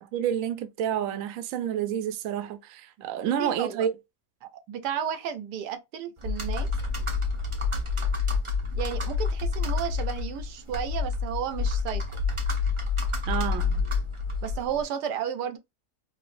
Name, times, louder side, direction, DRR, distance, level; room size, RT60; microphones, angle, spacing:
voice 1, 0.0-3.9 13.3-13.8, right 9 dB, 65° right, 0.9 m, -29 dB
voice 2, 3.2-3.9 4.4-6.7 8.8-12.0 14.4-15.6, right 8 dB, 85° right, 1.2 m, -33 dB
Computer keyboard, 6.2-14.8, left 4 dB, 50° right, 0.3 m, -28 dB
4.6 x 2.1 x 2.4 m
omnidirectional pair, 1.7 m